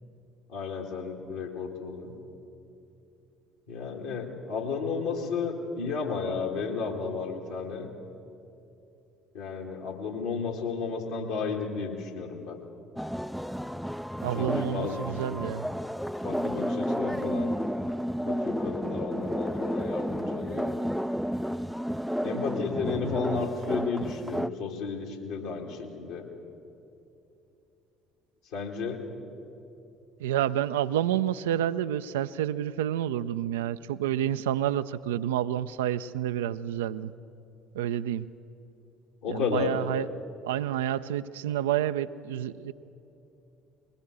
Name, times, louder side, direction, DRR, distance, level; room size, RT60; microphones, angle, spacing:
voice 1, 0.5-2.2 3.7-7.9 9.3-12.6 14.3-15.0 16.2-17.5 18.3-20.8 22.2-26.3 28.5-29.0 39.2-39.7, left 5 dB, 70° left, 0 dB, 2.5 m, -33 dB
sound 1, 13.0-24.5, equal, ahead, 0.4 m, -31 dB
voice 2, 14.2-15.7 30.2-37.1 37.7-38.3 39.3-40.1 40.4-42.7, right 11 dB, 75° right, 12 dB, 0.4 m, -29 dB
21.5 x 20.0 x 6.8 m, 2.8 s
figure-of-eight pair, 55°, 0 cm